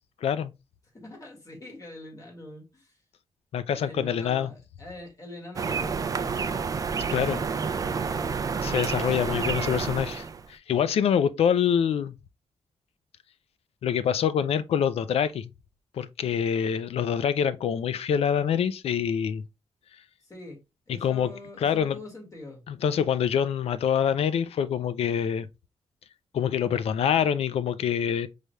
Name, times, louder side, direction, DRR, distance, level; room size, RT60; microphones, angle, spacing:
voice 1, 0.2-0.5 3.5-4.5 7.1-7.4 8.6-12.1 13.8-15.5 16.0-19.4 20.9-21.3 21.6-22.0 22.7-25.5 26.3-28.3, left 8 dB, 80° left, 0.4 m, -25 dB
voice 2, 0.9-3.0 3.7-6.7 7.0-8.4 20.2-20.6 20.9-22.6, left 1 dB, 30° left, 1.9 m, -43 dB
sound 1, 5.6-10.5, right 5 dB, 35° right, 0.4 m, -29 dB
5.3 x 3.3 x 2.3 m
wide cardioid pair, 135°, 10 cm